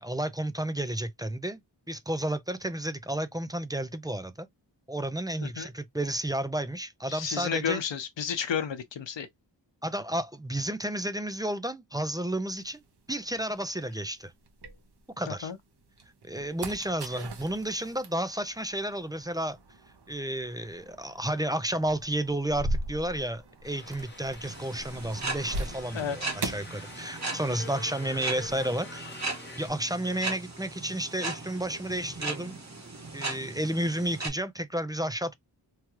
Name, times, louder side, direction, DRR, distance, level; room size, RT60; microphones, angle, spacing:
voice 1, 0.0-1.6 1.9-4.5 4.9-7.8 9.8-12.8 13.1-14.3 15.2-15.5 16.2-19.6 20.1-29.1 29.6-32.6 33.1-35.3, right 1 dB, 10° right, 0.3 m, -32 dB
voice 2, 7.1-9.3 15.3-15.6 25.9-26.4, left 7 dB, 80° left, 0.7 m, -32 dB
sound 1, 12.6-15.4 15.8-27.6 27.8-28.6, right 1 dB, 65° right, 0.8 m, -40 dB
sound 2, 23.6-29.7, left 3 dB, 25° left, 0.8 m, -46 dB
sound 3, 24.4-34.3, right 3 dB, 40° right, 1.0 m, -38 dB
3.1 x 2.3 x 2.9 m
wide cardioid pair, 90°, 43 cm